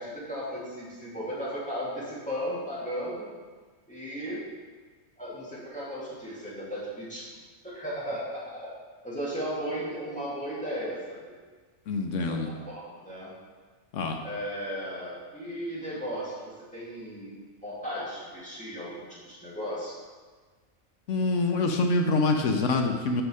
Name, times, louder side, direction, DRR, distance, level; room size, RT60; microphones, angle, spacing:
voice 1, 0.0-3.3 3.9-4.4 5.2-7.3 7.6-8.7 9.0-11.4 12.3-13.3 14.2-17.3 17.6-19.9, equal, 5° left, -9 dB, 2.2 m, -35 dB
voice 2, 11.9-12.5 13.9-14.2 21.1-23.2, left 3 dB, 70° left, 4 dB, 1.0 m, -25 dB
6.2 x 5.4 x 4.8 m, 1.5 s
omnidirectional pair, 1.4 m